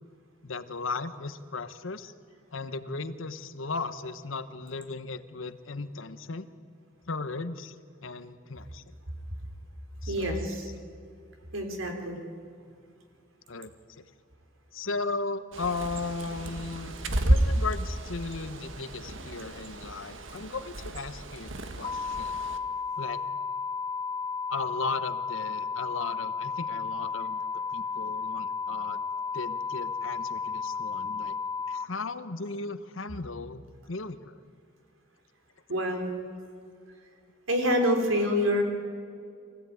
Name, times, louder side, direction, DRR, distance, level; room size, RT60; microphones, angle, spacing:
voice 1, 0.4-2.1 2.5-6.5 7.1-7.7 8.0-8.8 10.0-10.8 13.5-14.0 14.7-16.9 17.2-22.4 23.0-23.2 24.5-29.0 29.3-31.4 31.7-34.4, left 3 dB, 75° left, 11 dB, 1.1 m, -36 dB
voice 2, 10.1-10.7 11.5-12.2 35.7-36.1 37.5-38.6, equal, 85° right, 4 dB, 3.7 m, -26 dB
Bird, 15.5-22.6, right 1 dB, 70° right, 1.6 m, -31 dB
sound 1, 21.8-31.8, left 5 dB, 20° left, 0.5 m, -33 dB
24.0 x 16.0 x 9.4 m, 2.3 s
head